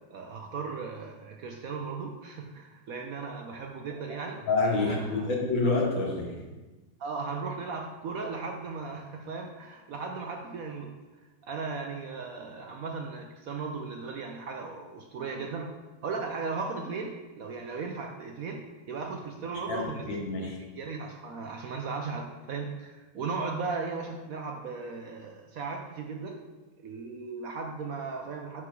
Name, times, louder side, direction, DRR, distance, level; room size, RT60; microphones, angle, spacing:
voice 1, 0.1-4.4 4.9-5.3 7.0-10.9 11.4-15.7 16.0-20.1 20.4-26.4 26.8-28.6, right 4 dB, 65° right, 2 dB, 0.9 m, -36 dB
voice 2, 4.5-6.4 19.7-20.6, left 3 dB, 85° left, -2 dB, 2.3 m, -28 dB
6.0 x 4.7 x 6.2 m, 1.2 s
omnidirectional pair, 2.0 m